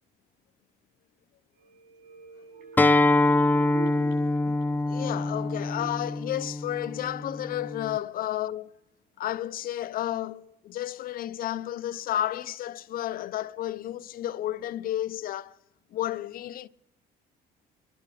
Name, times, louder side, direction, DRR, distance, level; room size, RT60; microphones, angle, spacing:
sound 1, 1.6-7.2 7.6-7.7, right 5 dB, 75° right, 6.7 m, -45 dB
Acoustic guitar, 2.8-8.0, left 2 dB, 10° left, 0.5 m, -25 dB
voice 1, 4.9-8.7 9.2-15.5 15.9-16.7, left 12 dB, 60° left, 0.6 m, -32 dB
29.0 x 11.0 x 3.5 m
cardioid pair, 110°, 17 cm